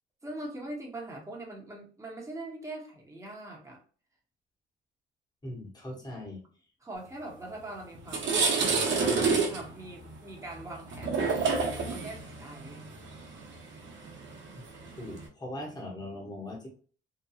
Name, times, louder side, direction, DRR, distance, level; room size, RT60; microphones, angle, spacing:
voice 1, 0.2-3.8 6.8-8.8 9.2-12.9, right 2 dB, 15° right, -2 dB, 1.1 m, -42 dB
voice 2, 5.4-6.4 14.5-14.6 15.0-16.7, left 1 dB, 20° left, -2 dB, 1.1 m, -40 dB
sound 1, 7.5-7.6 7.9-15.3, right 4 dB, 70° right, 0.8 m, -29 dB
2.9 x 2.3 x 2.3 m, 0.41 s
cardioid pair, 90°, 20 cm